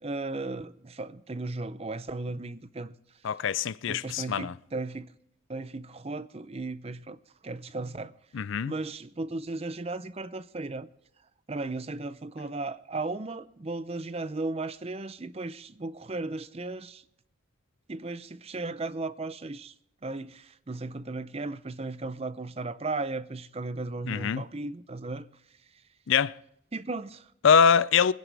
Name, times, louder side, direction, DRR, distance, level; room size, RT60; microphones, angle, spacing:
voice 1, 0.0-3.0 3.9-5.1 5.5-7.2 7.4-8.1 8.7-10.9 11.5-17.0 17.9-19.7 20.0-25.3 26.7-27.3, right 3 dB, 30° right, 0.5 m, -35 dB
voice 2, 3.2-4.5 8.3-8.7 24.1-24.4 26.1-26.3 27.4-28.1, left 6 dB, 60° left, 0.4 m, -23 dB
24.0 x 10.5 x 3.4 m
head